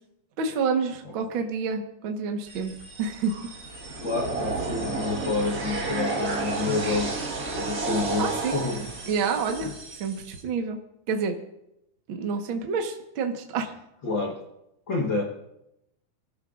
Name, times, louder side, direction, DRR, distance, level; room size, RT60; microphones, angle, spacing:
voice 1, 0.4-2.7 3.0-3.3 8.2-8.6 9.1-9.7 10.0-10.8 11.1-11.4 12.1-13.7, right 5 dB, 75° right, 3 dB, 1.1 m, -28 dB
sound 1, 2.5-10.4, right 3 dB, 55° right, 1.0 m, -32 dB
voice 2, 4.0-7.2 7.6-8.8 9.6-9.7 14.0-14.4 14.9-15.2, left 3 dB, 85° left, -1 dB, 1.0 m, -28 dB
28.0 x 13.0 x 2.5 m, 0.83 s
omnidirectional pair, 4.5 m